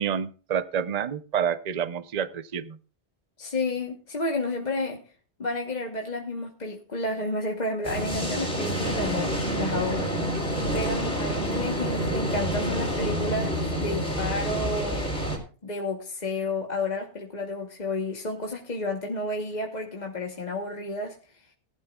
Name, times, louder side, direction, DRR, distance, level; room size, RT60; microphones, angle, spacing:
voice 1, 0.0-2.8, right 8 dB, 45° right, 0.7 m, -28 dB
voice 2, 3.4-5.0 5.4-10.1 10.7-15.1 15.6-21.2, left 2 dB, 40° left, 1.2 m, -31 dB
sound 1, 7.8-15.4, equal, 5° left, 3.4 m, -28 dB
18.5 x 11.5 x 2.4 m
omnidirectional pair, 1.1 m